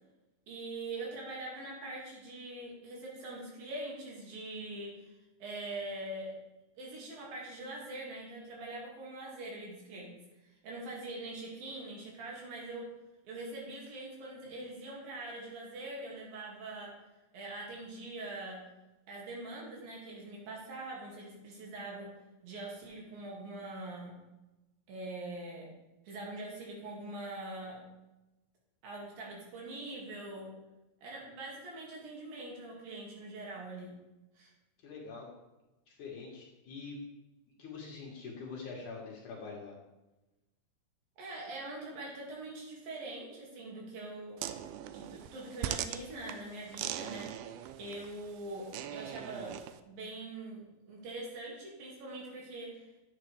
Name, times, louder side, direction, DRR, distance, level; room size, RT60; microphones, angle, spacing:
voice 1, 0.5-5.1 5.4-6.4 6.8-10.2 10.4-12.9 13.2-16.9 17.3-18.6 19.1-24.2 24.9-25.7 26.1-27.8 28.8-30.6 31.0-33.9 34.4-34.5 41.2-44.4 44.9-47.3 47.8-49.6 49.8-53.0, right 2 dB, 70° right, -3 dB, 3.7 m, -43 dB
voice 2, 34.8-35.3 35.9-37.0 37.6-39.7, left 4 dB, 60° left, -2 dB, 2.6 m, -44 dB
sound 1, 44.4-49.8, right 11 dB, 85° right, 2.4 m, -41 dB
10.0 x 8.3 x 3.3 m, 1.0 s
omnidirectional pair, 4.4 m